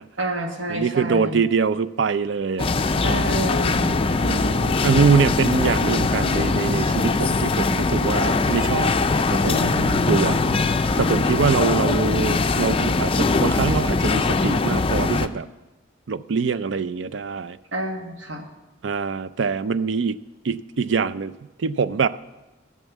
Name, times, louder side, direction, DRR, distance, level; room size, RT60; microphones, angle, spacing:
voice 1, 0.2-1.4 3.0-4.0 9.4-10.6 17.7-18.5, right 1 dB, 85° right, 3 dB, 1.7 m, -28 dB
voice 2, 0.7-2.7 4.2-8.9 9.3-9.6 10.0-10.4 11.0-15.5 16.1-17.6 18.8-20.2 20.4-21.3 21.6-22.1, right 5 dB, 70° right, 15 dB, 0.4 m, -23 dB
sound 1, 2.6-15.3, left 3 dB, 30° left, 0.4 m, -21 dB
12.5 x 7.3 x 7.2 m, 1.1 s
head